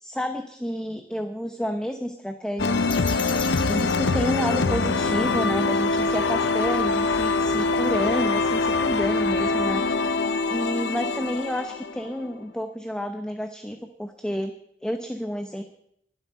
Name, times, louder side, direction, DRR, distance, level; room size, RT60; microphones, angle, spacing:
voice 1, 0.0-3.4 3.7-10.2 10.5-14.5 14.8-15.6, equal, 5° left, 6 dB, 0.8 m, -30 dB
sound 1, 2.6-12.4, left 3 dB, 70° left, 0.7 m, -24 dB
sound 2, 2.9-5.0, left 5 dB, 30° left, 1.1 m, -37 dB
22.0 x 7.8 x 5.6 m, 0.74 s
head